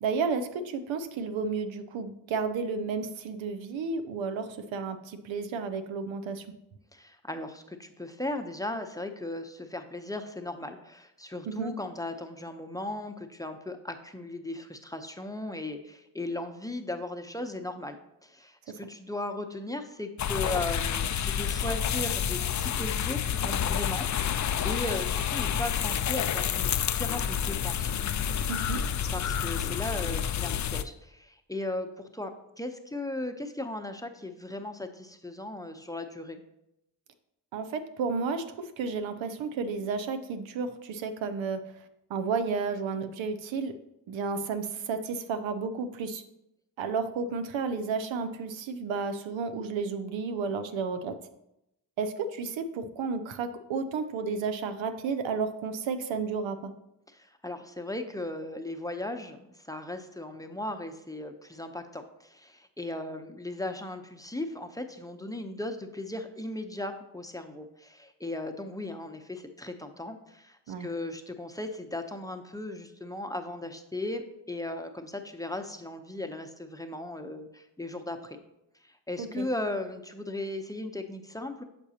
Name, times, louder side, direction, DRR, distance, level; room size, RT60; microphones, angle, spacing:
voice 1, 0.0-6.5 11.5-11.7 28.5-28.8 37.5-41.6 42.1-43.7 44.1-46.2 46.8-51.1 52.0-56.7 70.7-70.9 79.2-79.5, right 5 dB, 90° right, 9 dB, 0.6 m, -32 dB
voice 2, 6.9-18.0 18.2-27.9 29.1-32.3 32.6-36.4 57.1-78.4 78.8-81.6, left 2 dB, 10° left, 6 dB, 0.7 m, -37 dB
sound 1, 20.2-30.8, left 8 dB, 45° left, 0.4 m, -29 dB
6.7 x 6.0 x 2.8 m, 0.83 s
cardioid pair, 50°, 45 cm